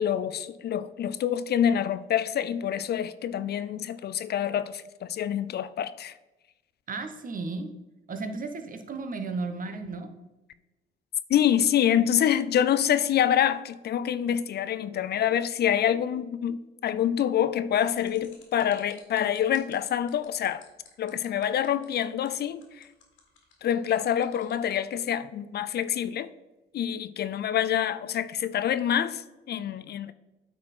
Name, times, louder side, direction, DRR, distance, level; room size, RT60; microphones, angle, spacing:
voice 1, 0.0-6.1 11.3-20.6 21.0-22.9 23.6-26.3 26.7-30.1, left 10 dB, 55° left, 0.4 m, -26 dB
voice 2, 6.9-7.7 8.1-10.1, right 3 dB, 45° right, 1.0 m, -34 dB
sound 1, 17.8-24.8, left 7 dB, 80° left, 1.8 m, -56 dB
8.4 x 4.3 x 4.3 m
cardioid pair, 90°, 20 cm